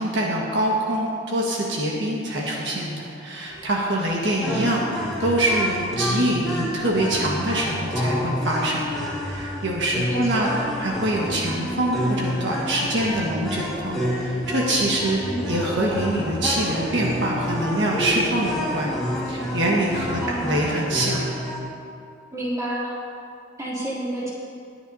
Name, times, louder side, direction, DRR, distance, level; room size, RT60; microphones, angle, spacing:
voice 1, 0.0-4.8 5.2-18.9 19.3-21.2, right 1 dB, 65° right, -3 dB, 1.6 m, -24 dB
sound 1, 3.5-21.1, equal, 35° right, 2.7 m, -40 dB
sound 2, 4.4-21.6, equal, ahead, 2.8 m, -29 dB
voice 2, 10.1-10.6 15.1-15.5 20.2-20.7 22.3-23.0 23.6-24.3, right 1 dB, 15° right, -8 dB, 3.0 m, -30 dB
19.5 x 9.6 x 2.8 m, 2.3 s
head